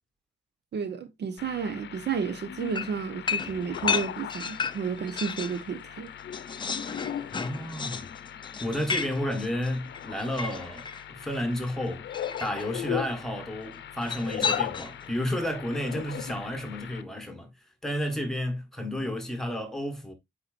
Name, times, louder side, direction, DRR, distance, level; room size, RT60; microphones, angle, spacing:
voice 1, 0.7-6.1, right 6 dB, 70° right, 1.1 m, -32 dB
sound 1, 1.4-17.0, left 10 dB, 85° left, 0.6 m, -38 dB
sound 2, 2.8-5.6 6.0-11.1 12.1-12.7 14.0-15.1, left 5 dB, 25° left, 0.5 m, -33 dB
voice 2, 7.3-8.1 8.6-12.1 12.4-17.5 17.8-20.1, left 1 dB, ahead, 1.4 m, -31 dB
8.2 x 4.9 x 2.5 m
wide cardioid pair, 175°, 18 cm